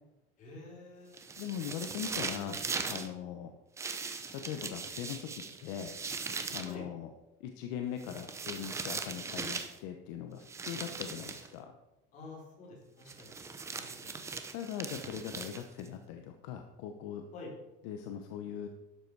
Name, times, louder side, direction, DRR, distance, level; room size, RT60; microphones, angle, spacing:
voice 1, 0.4-1.2 6.6-6.9 12.1-13.4 13.7-14.3 17.3-17.5, left 2 dB, 35° left, -2 dB, 4.0 m, -49 dB
sound 1, 1.1-3.1 3.8-6.7 8.0-9.8 10.5-11.5 13.1-15.9, right 4 dB, 15° right, 0.7 m, -39 dB
voice 2, 1.4-2.6 2.9-3.5 4.3-5.9 6.5-7.1 7.4-11.7 14.5-17.3 17.8-18.7, left 9 dB, 65° left, 6 dB, 0.9 m, -40 dB
12.0 x 7.9 x 4.7 m, 0.99 s
cardioid pair, 170°, 21 cm